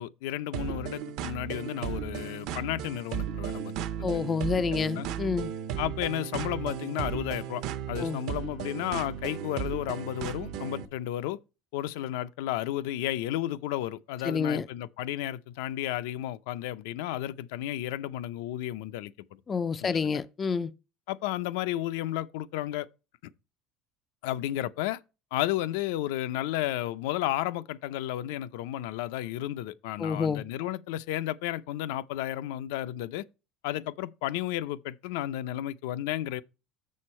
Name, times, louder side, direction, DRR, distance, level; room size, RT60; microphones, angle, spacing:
voice 1, 0.0-3.7 4.1-4.2 4.8-5.1 5.8-11.4 11.7-19.1 19.8-20.2 21.1-22.9 24.2-25.0 25.3-33.2 33.6-36.4, left 13 dB, 80° left, 0.5 m, -33 dB
sound 1, 0.5-10.9, right 9 dB, 55° right, 0.8 m, -35 dB
voice 2, 4.0-5.5 8.0-8.2 14.2-14.7 19.5-20.7 30.0-30.4, left 5 dB, 20° left, 0.3 m, -28 dB
6.9 x 6.4 x 4.2 m
cardioid pair, 175°, 0 cm